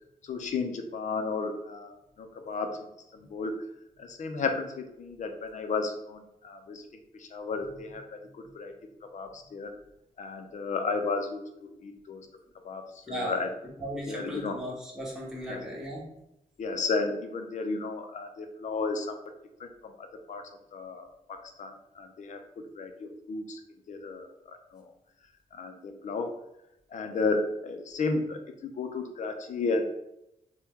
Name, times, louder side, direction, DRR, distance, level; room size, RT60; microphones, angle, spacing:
voice 1, 0.2-3.6 4.0-6.8 7.2-8.0 8.3-8.7 9.1-9.7 10.2-12.3 12.6-12.8 13.1-13.5 14.1-14.6 15.5-15.6 16.6-19.2 19.6-20.4 20.7-21.1 21.6-22.4 22.8-23.6 23.9-24.3 24.7-24.8 25.5-26.3 26.9-29.8, left 3 dB, 55° left, 5 dB, 0.5 m, -33 dB
voice 2, 13.1-13.4 13.8-16.0, equal, 5° right, -4 dB, 0.9 m, -36 dB
2.9 x 2.2 x 3.5 m, 0.84 s
cardioid pair, 100°, 15 cm